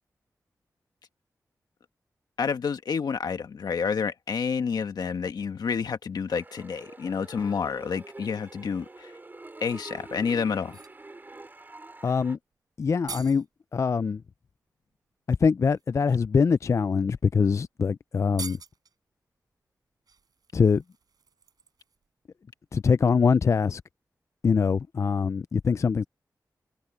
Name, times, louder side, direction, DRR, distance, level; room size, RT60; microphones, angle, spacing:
voice 1, 2.4-9.1 9.6-10.8, left 6 dB, 90° left, 1.6 m, -29 dB
sound 1, 6.3-12.4, right 2 dB, 30° right, 3.1 m, -46 dB
sound 2, 10.6-11.0 12.5-12.6 12.8-13.5 14.9-15.0 15.6-15.8 16.7-16.8 17.2-17.3 17.6-17.7 18.2-19.0 20.1-22.1 22.4-22.5, right 5 dB, 75° right, 4.5 m, -44 dB
voice 2, 12.0-12.4 12.8-13.5 13.7-14.2 15.3-18.6 20.5-20.8 22.7-23.8 24.4-26.0, left 5 dB, 45° left, 0.3 m, -23 dB
wide cardioid pair, 105°, 7 cm